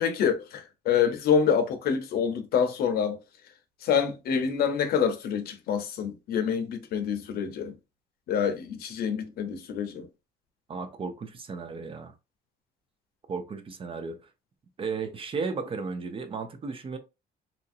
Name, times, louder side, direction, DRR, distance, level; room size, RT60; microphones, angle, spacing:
voice 1, 0.0-3.2 3.8-7.7 8.3-10.1, left 7 dB, 65° left, 0.7 m, -26 dB
voice 2, 10.7-12.1 13.3-14.2 14.8-17.0, right 4 dB, 30° right, 0.5 m, -34 dB
2.9 x 2.5 x 2.5 m
cardioid pair, 110°, 17 cm